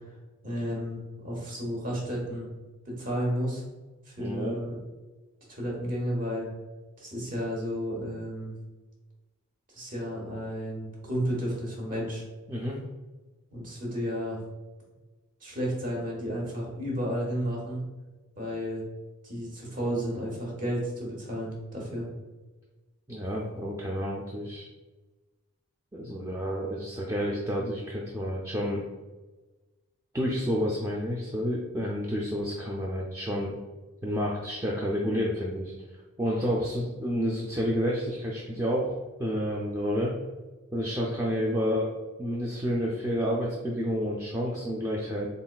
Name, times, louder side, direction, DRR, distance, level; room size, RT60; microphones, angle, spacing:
voice 1, 0.4-2.5 2.8-3.6 4.1-4.8 5.5-6.5 7.0-8.5 9.7-12.2 13.5-14.4 15.4-17.8 18.3-18.8 19.2-22.0, equal, 40° right, -3 dB, 1.2 m, -32 dB
voice 2, 4.2-4.6 12.5-12.8 23.1-24.7 25.9-28.9 30.1-33.6 34.0-35.7 36.2-40.1 40.7-45.3, equal, 15° right, -4 dB, 0.4 m, -30 dB
3.9 x 3.9 x 2.3 m, 1.2 s
head